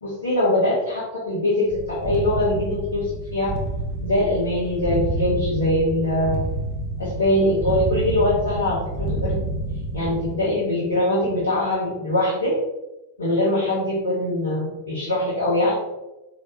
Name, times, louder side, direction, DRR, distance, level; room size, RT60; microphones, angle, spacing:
voice 1, 0.0-3.5 4.0-6.4 7.0-9.4 9.9-12.5 13.2-15.7, left 1 dB, 75° left, -7 dB, 1.1 m, -22 dB
sound 1, 1.7-10.4, right 1 dB, 35° right, 0.7 m, -29 dB
4.6 x 3.0 x 2.9 m, 1.0 s
figure-of-eight pair, 90°, 0 cm